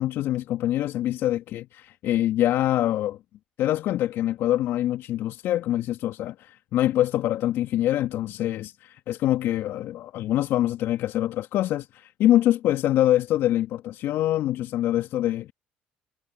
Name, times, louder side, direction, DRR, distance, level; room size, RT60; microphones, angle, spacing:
voice 1, 0.0-3.2 3.6-15.5, left 13 dB, 65° left, 1.8 m, -24 dB
hypercardioid pair, 60°, 4 cm